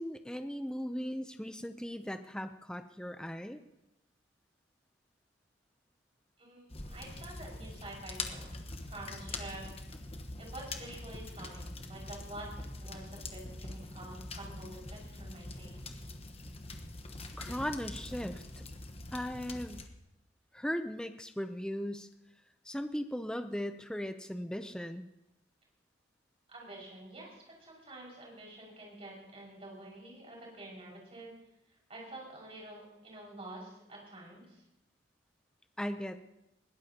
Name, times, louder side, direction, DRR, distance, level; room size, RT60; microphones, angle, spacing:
voice 1, 0.0-3.6 17.4-18.4 19.1-19.8 20.5-22.1 22.7-25.1 35.8-36.2, equal, 5° left, 8 dB, 0.5 m, -38 dB
voice 2, 6.4-8.6 8.9-9.7 10.4-15.8 26.5-31.3 31.9-34.6, right 1 dB, 35° right, -3 dB, 5.6 m, -48 dB
sound 1, 6.7-19.9, left 2 dB, 30° left, 1.2 m, -44 dB
21.0 x 18.0 x 2.9 m, 0.89 s
head